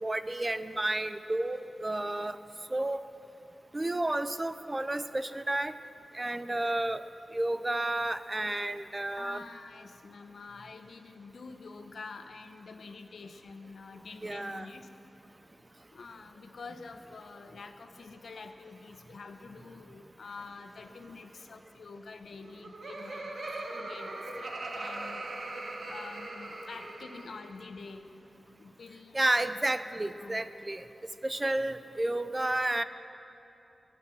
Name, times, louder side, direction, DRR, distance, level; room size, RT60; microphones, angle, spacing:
voice 1, 0.0-2.4 2.7-3.0 3.7-5.8 6.1-7.0 7.3-9.4 14.2-14.7 29.1-30.9 31.2-32.8, right 1 dB, 20° right, 12 dB, 0.5 m, -31 dB
voice 2, 9.2-14.9 15.9-23.3 23.7-25.4 25.9-28.1 28.6-29.4 30.2-30.5, left 4 dB, 80° left, 8 dB, 0.9 m, -47 dB
Laughter, 22.3-27.6, right 2 dB, 65° right, 1.5 m, -40 dB
21.5 x 9.7 x 6.2 m, 2.9 s
wide cardioid pair, 135°, 0 cm